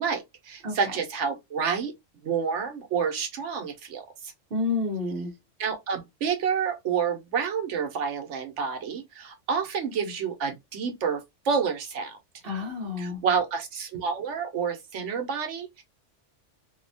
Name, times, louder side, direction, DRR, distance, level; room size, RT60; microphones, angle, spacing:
voice 1, 0.0-1.9 2.2-4.3 5.6-12.2 13.0-15.8, right 6 dB, 75° right, 1.0 m, -29 dB
voice 2, 4.5-5.3 12.4-13.2, left 3 dB, 50° right, 1.0 m, -29 dB
2.7 x 2.1 x 2.6 m
omnidirectional pair, 1.3 m